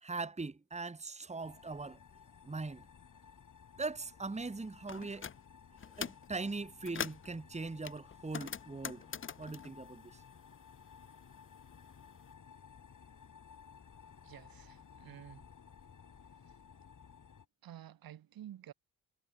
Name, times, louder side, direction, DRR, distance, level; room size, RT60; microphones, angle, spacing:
voice 1, 0.0-2.0 2.4-2.8 3.8-5.3 6.0-9.0 9.4-10.2, right 3 dB, 20° right, 1.5 m, -40 dB
sound 1, 1.4-17.5, left 7 dB, 60° left, 6.2 m, -57 dB
Tape Deck Startup, 4.9-5.4 5.8-6.3 6.6-7.3 7.8-10.8 11.1-12.2, left 7 dB, 35° left, 0.7 m, -43 dB
voice 2, 14.2-15.5 16.4-16.6 17.6-18.7, right 11 dB, 85° right, 3.0 m, -51 dB
cardioid pair, 65°, 35 cm